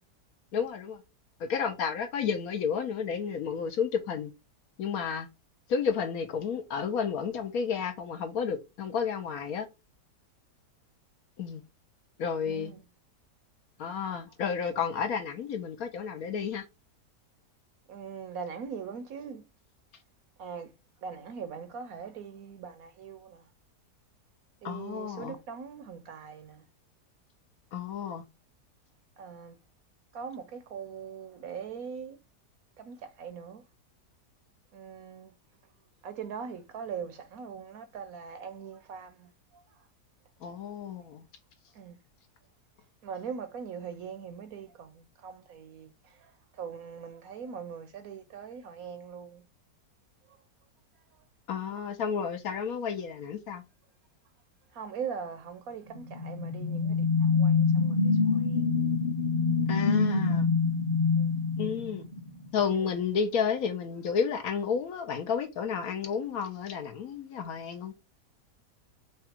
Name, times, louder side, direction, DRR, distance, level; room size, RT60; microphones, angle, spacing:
voice 1, 0.5-1.0 1.4-4.3 4.8-5.3 5.7-9.7 11.4-11.6 12.2-12.7 13.8-16.6 24.6-25.4 27.7-28.2 40.4-41.2 51.5-53.6 59.7-60.5 61.6-62.1 62.5-67.9, left 6 dB, 65° left, 1.1 m, -31 dB
voice 2, 17.9-19.4 20.4-20.7 21.0-23.4 24.6-26.6 29.2-29.5 30.1-32.2 32.8-33.6 34.7-35.3 36.0-39.3 41.8-41.9 43.0-45.9 46.6-49.4 54.8-58.0 58.3-58.6 61.2-61.4, right 6 dB, 65° right, 1.0 m, -41 dB
sound 1, 55.9-62.5, left 5 dB, 25° left, 0.8 m, -26 dB
4.9 x 2.3 x 4.3 m
omnidirectional pair, 1.8 m